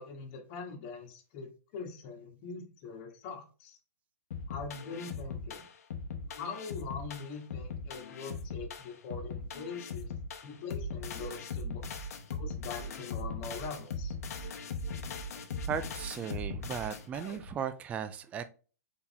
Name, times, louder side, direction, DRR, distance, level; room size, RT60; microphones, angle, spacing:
voice 1, 0.0-3.8 4.5-5.7 6.4-10.1 10.4-11.8 12.3-14.1, left 5 dB, 40° left, 2 dB, 1.4 m, -43 dB
sound 1, 4.3-17.5, left 3 dB, 70° left, 0.9 m, -39 dB
voice 2, 15.7-18.5, right 8 dB, 15° right, 11 dB, 0.3 m, -36 dB
4.2 x 3.8 x 2.9 m, 0.36 s
hypercardioid pair, 140°, 9 cm